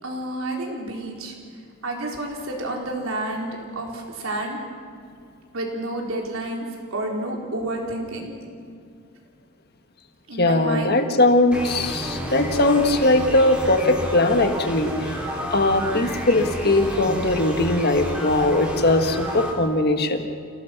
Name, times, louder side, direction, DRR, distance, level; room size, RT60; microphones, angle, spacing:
voice 1, 0.0-1.3 1.8-4.6 5.5-6.6 6.9-8.3 10.3-11.0 11.9-12.1, right 1 dB, 75° right, 0 dB, 4.2 m, -30 dB
voice 2, 10.4-15.1 15.5-20.2, left 2 dB, 50° left, 6 dB, 1.6 m, -20 dB
sound 1, 11.5-19.5, equal, 5° right, 3.6 m, -30 dB
29.5 x 18.0 x 6.0 m, 2.3 s
head